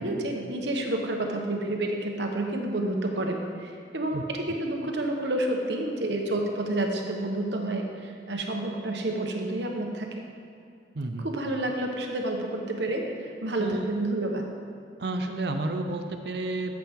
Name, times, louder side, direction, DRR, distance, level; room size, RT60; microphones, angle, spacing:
voice 1, 0.0-10.3 11.2-14.5, right 1 dB, 85° right, 2 dB, 1.2 m, -29 dB
voice 2, 10.9-11.3 13.6-13.9 15.0-16.7, right 2 dB, 65° right, 5 dB, 0.7 m, -31 dB
13.5 x 7.6 x 3.7 m, 2.5 s
head